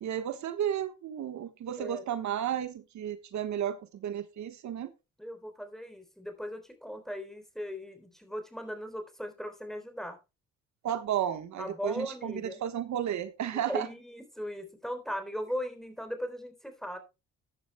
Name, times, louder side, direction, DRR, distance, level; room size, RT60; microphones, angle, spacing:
voice 1, 0.0-4.9 10.8-13.9, right 10 dB, 70° right, 10 dB, 1.4 m, -33 dB
voice 2, 5.2-10.2 11.6-12.6 13.5-17.0, equal, ahead, 8 dB, 3.7 m, -38 dB
15.0 x 11.0 x 2.3 m, 0.27 s
cardioid pair, 90°, 30 cm